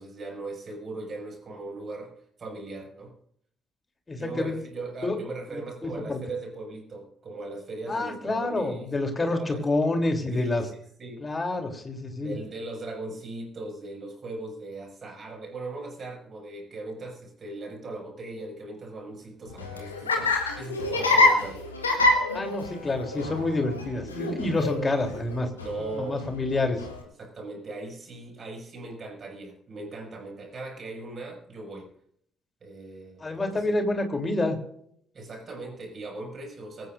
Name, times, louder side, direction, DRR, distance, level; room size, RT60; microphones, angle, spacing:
voice 1, 0.0-3.1 4.1-9.6 10.3-11.2 12.2-21.6 25.6-26.2 27.2-31.9 32.6-33.8 35.1-36.9, right 2 dB, 40° right, 0 dB, 6.5 m, -39 dB
voice 2, 4.1-4.5 5.0-5.2 5.8-6.2 7.9-10.6 11.2-12.3 22.3-25.5 26.0-26.8 33.2-34.6, left 2 dB, 30° left, 4 dB, 3.4 m, -28 dB
Laughter, 19.5-27.0, left 2 dB, 85° left, 1.6 m, -26 dB
23.5 x 15.5 x 2.6 m, 0.67 s
figure-of-eight pair, 45°, 0 cm